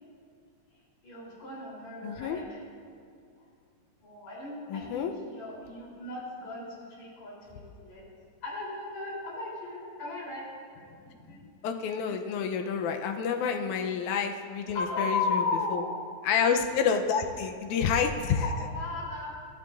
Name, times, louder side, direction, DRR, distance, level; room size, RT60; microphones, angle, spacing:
voice 1, 1.0-2.6 4.0-8.0 8.4-10.4 10.8-10.9 11.3-11.5 12.1-12.5 14.7-16.0 17.8-17.9 18.4-19.4, left 3 dB, 65° left, -5 dB, 4.8 m, -35 dB
voice 2, 2.0-2.4 4.7-5.1 11.6-15.4 15.7-15.8 16.2-18.4, left 6 dB, 85° left, 4 dB, 2.1 m, -28 dB
22.0 x 12.0 x 2.5 m, 2.4 s
omnidirectional pair, 3.4 m